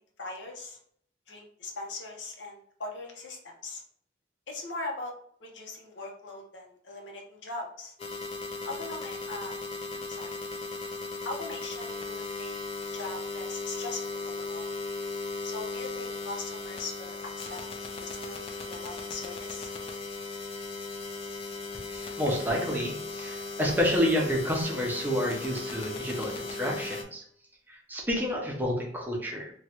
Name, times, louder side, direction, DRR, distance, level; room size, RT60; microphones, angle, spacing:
voice 1, 0.2-0.8 1.3-3.8 4.5-5.1 5.4-7.9 8.7-9.5 9.9-10.3 11.2-14.7 15.4-19.7, left 2 dB, 80° left, 1 dB, 0.7 m, -40 dB
sound 1, 8.0-27.0, left 3 dB, 30° left, 0.4 m, -37 dB
voice 2, 21.7-27.2 27.7-29.5, equal, 10° right, -1 dB, 0.6 m, -29 dB
3.0 x 2.3 x 2.9 m, 0.62 s
head